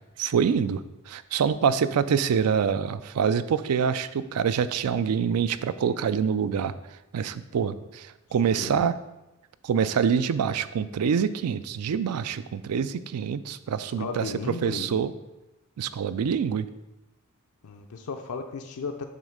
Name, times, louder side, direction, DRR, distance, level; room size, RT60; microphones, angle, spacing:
voice 1, 0.0-6.7 7.1-8.9 9.6-15.1 15.8-16.7, right 7 dB, 85° right, 14 dB, 0.4 m, -26 dB
voice 2, 8.4-8.9 14.0-15.0 17.6-19.1, left 4 dB, 80° left, 5 dB, 0.5 m, -35 dB
7.5 x 3.1 x 5.0 m, 0.97 s
head